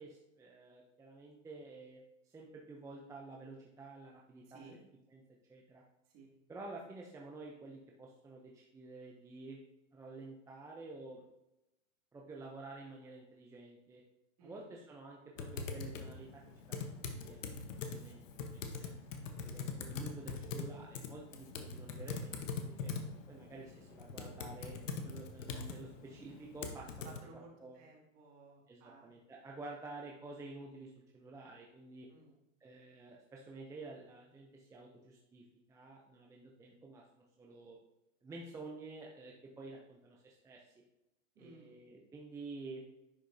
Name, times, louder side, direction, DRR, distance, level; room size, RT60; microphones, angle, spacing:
voice 1, 0.0-4.8 5.1-5.2 5.5-5.8 6.5-9.6 9.9-11.2 12.1-14.0 14.4-16.4 16.7-18.9 19.2-22.9 23.3-24.8 25.0-27.1 27.6-27.9 28.7-32.1 32.6-37.8 38.2-40.7 41.4-42.9, right 3 dB, 10° right, -2 dB, 0.6 m, -50 dB
voice 2, 4.5-4.8 6.1-6.3 14.4-14.7 27.0-29.1 32.1-32.3 41.3-41.8, right 4 dB, 40° right, -2 dB, 2.3 m, -57 dB
Typing, 15.4-27.2, left 4 dB, 70° left, 1.2 m, -43 dB
10.5 x 5.0 x 2.7 m, 0.89 s
hypercardioid pair, 125°, 40 cm